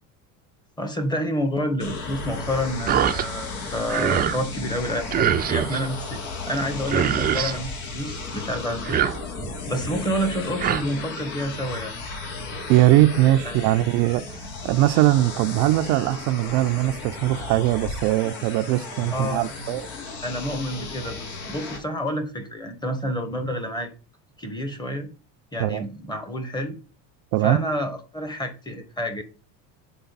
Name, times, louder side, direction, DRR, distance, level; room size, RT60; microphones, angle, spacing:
voice 1, 0.8-6.2 6.5-9.1 9.7-11.9 13.5-13.6 19.1-19.5 20.2-23.9 24.4-25.1 25.5-26.8 27.4-29.2, equal, 10° left, 1.0 m, -29 dB
sound 1, 1.8-21.8, left 3 dB, 80° left, 2.3 m, -35 dB
sound 2, 2.9-3.3 3.6-4.4 5.1-5.8 6.6-6.7 6.8-7.6 8.7-9.6 10.3-10.8, right 9 dB, 25° right, 0.5 m, -24 dB
voice 2, 12.7-19.8 25.6-25.8 27.3-27.7, right 16 dB, 70° right, 0.5 m, -21 dB
6.9 x 4.0 x 4.0 m
cardioid pair, 130°, 39 cm